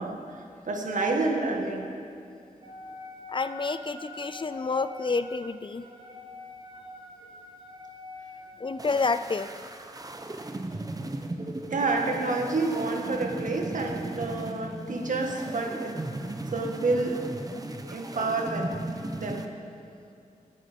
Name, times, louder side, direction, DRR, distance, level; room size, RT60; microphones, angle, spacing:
voice 1, 0.0-1.9 11.7-15.9 16.5-17.2 17.9-18.7 19.2-19.4, right 3 dB, 70° right, 2 dB, 1.9 m, -29 dB
Wind instrument woodwind instrument, 2.6-9.1, left 2 dB, 45° right, 3.0 m, -45 dB
voice 2, 3.3-5.8 8.6-9.5, left 4 dB, 35° left, 12 dB, 0.5 m, -29 dB
sound 1, 8.8-19.5, right 2 dB, 25° right, 1.0 m, -37 dB
19.0 x 10.0 x 5.3 m, 2.5 s
wide cardioid pair, 90°, 14 cm